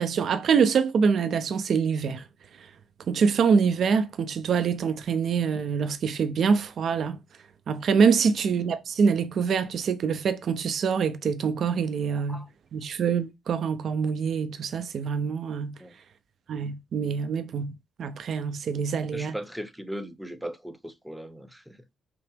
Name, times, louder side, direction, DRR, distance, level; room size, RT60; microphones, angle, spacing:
voice 1, 0.0-2.2 3.1-7.2 7.7-12.4 12.7-15.8 16.5-19.4, right 6 dB, 60° right, 0.6 m, -25 dB
voice 2, 19.1-21.9, equal, 5° right, 0.7 m, -38 dB
5.8 x 2.1 x 3.5 m
cardioid pair, 90°, 0 cm